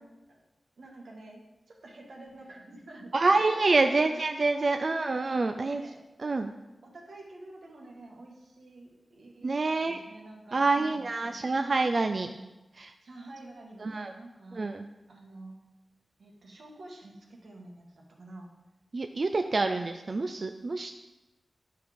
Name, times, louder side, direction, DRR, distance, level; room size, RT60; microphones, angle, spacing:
voice 1, 0.8-3.5 3.9-4.2 4.7-5.1 5.5-6.4 6.8-11.5 12.2-12.4 13.0-14.7 15.1-15.6 16.2-18.5 19.4-19.8, right 2 dB, 80° right, -1 dB, 1.7 m, -49 dB
voice 2, 3.1-5.8 6.2-6.5 9.4-10.0 10.5-12.3 12.8-12.9 13.8-14.1 14.5-14.8 18.9-21.0, right 3 dB, 45° right, 6 dB, 0.4 m, -27 dB
11.0 x 4.7 x 5.2 m, 1.1 s
wide cardioid pair, 115°, 0 cm